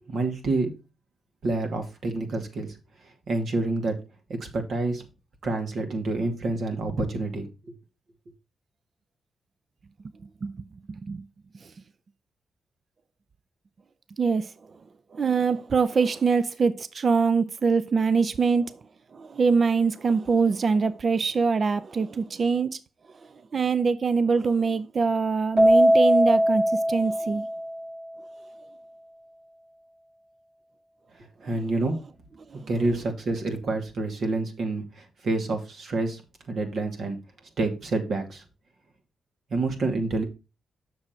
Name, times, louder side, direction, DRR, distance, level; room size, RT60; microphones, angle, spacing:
voice 1, 0.1-0.7 1.4-2.8 3.3-4.0 4.3-5.0 5.4-7.8 31.4-32.0 32.7-36.2 36.5-37.2 37.6-38.4 39.5-40.2, right 2 dB, 65° right, 2.4 m, -28 dB
voice 2, 10.9-11.2 11.6-11.7 14.2-14.5 15.1-18.8 19.1-22.8 23.5-26.6 26.9-27.5 32.5-32.7, right 5 dB, 50° right, 0.6 m, -24 dB
Keyboard (musical), 25.6-28.1, equal, 25° right, 0.9 m, -20 dB
7.3 x 6.3 x 4.5 m
supercardioid pair, 55°, 0 cm